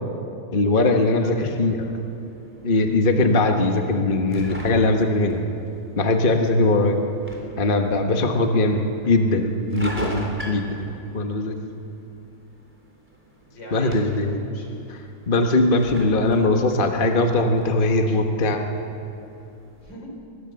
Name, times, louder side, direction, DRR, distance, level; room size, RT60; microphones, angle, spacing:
voice 1, 0.5-1.8 2.6-5.4 6.0-7.0 7.6-11.6 13.7-14.4 15.3-18.7, left 2 dB, 30° left, 4 dB, 1.3 m, -20 dB
voice 2, 1.1-2.0 8.2-8.3 13.3-14.9 19.8-20.2, left 1 dB, 70° left, 1 dB, 4.6 m, -41 dB
sound 1, 1.3-19.9, equal, 5° right, 3.6 m, -42 dB
24.5 x 20.5 x 7.0 m, 2.8 s
omnidirectional pair, 2.0 m